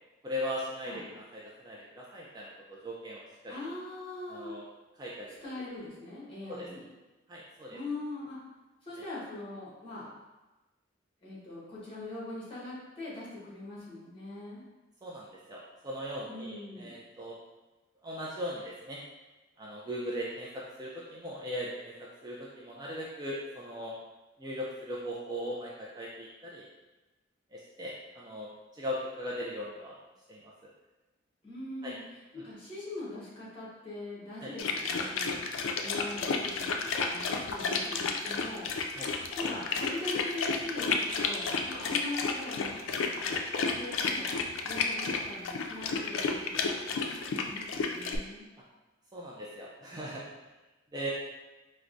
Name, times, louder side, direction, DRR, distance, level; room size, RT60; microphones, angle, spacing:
voice 1, 0.2-3.6 4.3-4.6 5.0-5.7 6.5-6.7 7.3-7.8 15.0-17.4 18.0-19.0 19.6-24.0 24.4-26.6 27.5-30.0 30.3-30.7 31.8-31.9 34.4-34.5 38.9-39.1 41.7-41.8 49.1-50.2 50.9-51.1, equal, 20° right, -5 dB, 0.3 m, -39 dB
voice 2, 3.5-4.6 5.4-6.9 7.7-8.4 8.8-10.1 11.2-14.6 16.3-17.0 31.4-32.0 32.3-38.7 39.3-44.3 44.6-48.5, left 2 dB, 25° left, -8 dB, 1.1 m, -42 dB
sound 1, 34.6-48.2, left 4 dB, 85° left, 0.3 m, -31 dB
4.4 x 2.1 x 2.5 m, 1.1 s
head